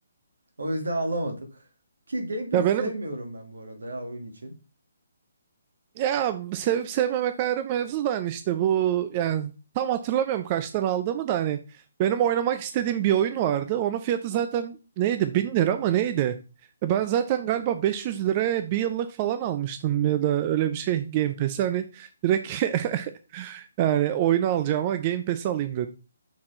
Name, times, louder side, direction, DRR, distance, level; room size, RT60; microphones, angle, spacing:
voice 1, 0.6-1.6 2.1-4.5, right 1 dB, 80° right, 5 dB, 1.8 m, -32 dB
voice 2, 2.5-2.9 6.0-11.6 12.0-16.4 16.8-25.9, right 11 dB, 30° right, 9 dB, 0.5 m, -25 dB
6.0 x 4.2 x 4.3 m, 0.32 s
figure-of-eight pair, 145°, 0 cm